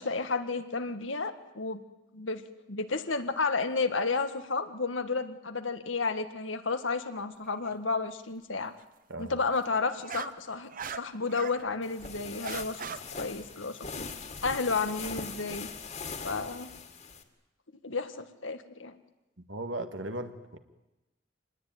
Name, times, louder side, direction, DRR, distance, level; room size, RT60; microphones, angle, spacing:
voice 1, 0.0-1.8 2.1-2.4 2.7-8.7 9.2-12.8 13.2-14.1 14.4-15.7 16.2-16.7 17.8-18.9, left 4 dB, 90° left, 8 dB, 1.8 m, -32 dB
sound 1, 7.4-7.7 9.5-11.6 12.0-13.0, right 6 dB, 45° right, 1.0 m, -40 dB
sound 2, 11.8-17.2, left 5 dB, 40° left, 2.4 m, -41 dB
voice 2, 19.5-20.6, right 1 dB, 70° right, 8 dB, 1.9 m, -37 dB
26.0 x 20.0 x 9.3 m, 1.0 s
head